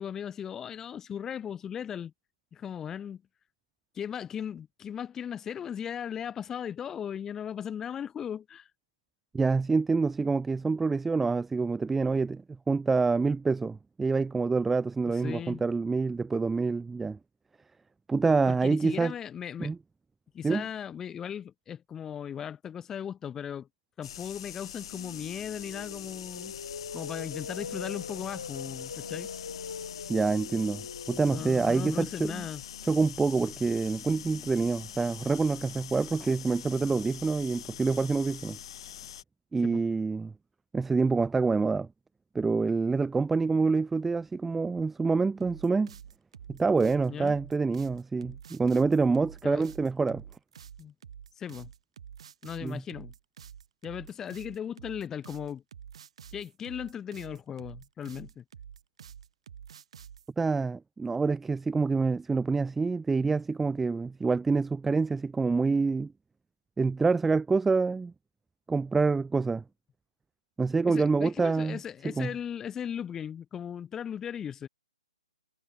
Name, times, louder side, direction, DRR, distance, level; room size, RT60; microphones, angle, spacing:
voice 1, 0.0-2.1 2.5-3.2 3.9-8.7 15.1-15.6 18.5-19.7 20.3-23.7 24.0-26.5 26.9-29.3 31.3-32.6 39.6-39.8 47.1-47.4 49.4-49.6 50.8-50.9 51.4-51.7 52.4-53.1 53.8-55.6 56.3-58.4 70.9-74.7, left 8 dB, 10° left, 6.0 m, -37 dB
voice 2, 9.3-17.2 18.1-19.1 19.6-19.8 20.4-20.6 30.1-32.4 32.9-38.6 39.5-40.3 40.7-41.9 42.3-45.9 46.5-50.2 52.6-52.8 60.4-66.1 66.8-68.1 68.7-69.6 70.6-71.8 72.2-72.3, right 4 dB, 5° right, 0.4 m, -27 dB
sound 1, 24.0-39.2, left 10 dB, 50° left, 2.1 m, -44 dB
sound 2, 24.6-34.7, left 5 dB, 80° left, 2.3 m, -43 dB
sound 3, 45.4-60.3, right 8 dB, 60° right, 3.1 m, -48 dB
hypercardioid pair, 155°, 4 cm